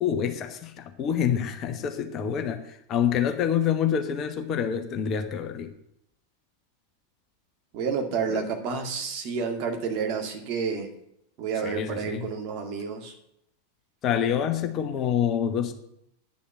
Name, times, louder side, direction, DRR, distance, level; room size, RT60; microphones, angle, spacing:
voice 1, 0.0-5.7 8.3-8.4 11.6-12.3 14.0-15.7, left 8 dB, 35° left, 1.1 m, -27 dB
voice 2, 7.7-10.9 11.4-13.1, right 6 dB, 40° right, 2.2 m, -30 dB
9.7 x 7.1 x 7.8 m
figure-of-eight pair, 90°, 0 cm